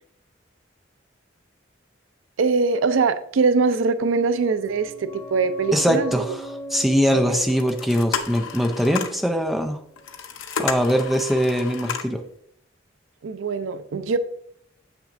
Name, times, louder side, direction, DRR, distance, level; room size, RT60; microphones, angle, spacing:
voice 1, 2.4-6.2 7.1-7.5 13.2-14.2, right 4 dB, 90° right, 12 dB, 0.4 m, -22 dB
sound 1, 4.3-9.7 9.9-10.0, right 1 dB, 30° left, 2.0 m, -39 dB
voice 2, 5.7-9.8 10.6-12.2, equal, ahead, 3 dB, 0.4 m, -22 dB
sound 2, 7.5-9.2 9.9-12.2, left 6 dB, 90° left, 0.6 m, -31 dB
7.2 x 5.9 x 2.5 m, 0.66 s
head